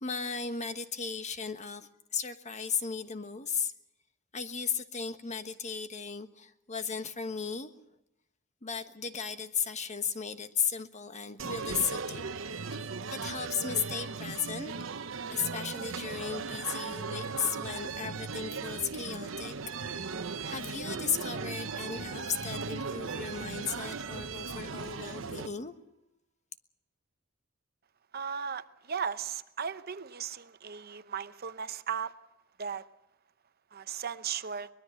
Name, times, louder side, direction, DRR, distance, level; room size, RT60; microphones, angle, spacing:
voice 1, 0.0-3.7 4.3-7.7 8.6-12.3 12.7-12.8 13.1-14.7 15.3-19.5 20.4-25.7, left 6 dB, 35° left, 1.3 m, -35 dB
sound 1, 11.4-25.5, right 4 dB, 75° right, 1.0 m, -37 dB
voice 2, 28.1-32.1 32.6-32.9 33.7-34.7, right 7 dB, 50° right, 0.8 m, -36 dB
23.5 x 21.0 x 6.5 m
head